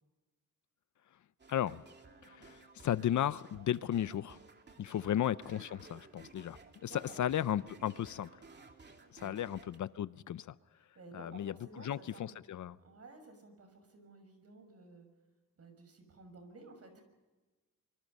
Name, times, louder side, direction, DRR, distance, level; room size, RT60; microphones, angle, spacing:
sound 1, 1.4-9.8, right 4 dB, 30° right, 2.5 m, -57 dB
voice 1, 1.5-1.8 2.2-4.4 4.8-8.3 9.1-10.5 11.1-12.8, left 11 dB, 60° left, 0.7 m, -35 dB
voice 2, 6.8-7.2 9.1-9.5 10.9-12.3 12.8-15.1 15.6-17.0, right 3 dB, 45° right, 6.3 m, -54 dB
25.5 x 24.5 x 5.5 m
cardioid pair, 130°, 33 cm